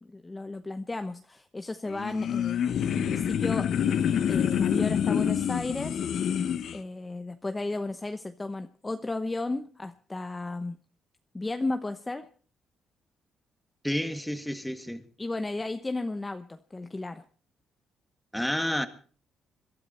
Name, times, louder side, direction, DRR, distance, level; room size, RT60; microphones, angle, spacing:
voice 1, 0.0-3.7 4.3-6.0 6.7-10.8 11.3-12.3 15.2-17.2, left 2 dB, 20° left, 0.9 m, -34 dB
sound 1, 1.9-6.8, left 8 dB, 65° left, 0.9 m, -27 dB
voice 2, 13.8-15.0 18.3-18.9, equal, 5° left, 1.8 m, -30 dB
22.5 x 13.0 x 4.3 m
cardioid pair, 90°, 0 cm